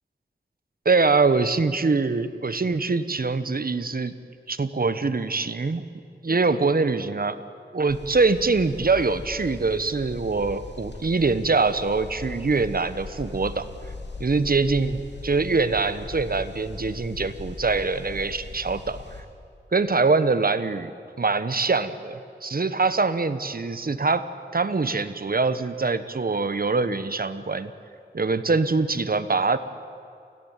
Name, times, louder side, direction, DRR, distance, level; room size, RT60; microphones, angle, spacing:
voice 1, 0.8-4.1 4.5-5.8 6.2-7.4 7.7-13.7 14.2-19.0 19.7-20.9 21.2-27.7 28.1-29.6, right 4 dB, 55° right, 13 dB, 1.2 m, -24 dB
sound 1, 7.9-19.2, left 3 dB, 70° left, 3.0 m, -39 dB
28.5 x 16.0 x 9.1 m, 2.4 s
wide cardioid pair, 50°, 19 cm